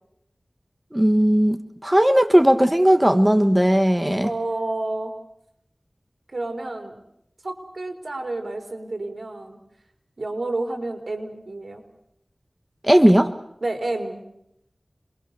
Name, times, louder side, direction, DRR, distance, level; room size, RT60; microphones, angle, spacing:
voice 1, 0.9-1.6 1.8-4.3 12.8-13.3, equal, 15° right, 9 dB, 1.4 m, -17 dB
voice 2, 4.2-5.1 6.3-6.9 7.4-9.6 10.2-11.8 13.6-14.2, right 2 dB, 70° right, 5 dB, 4.4 m, -30 dB
28.0 x 22.0 x 6.9 m, 0.78 s
wide cardioid pair, 40°, 0 cm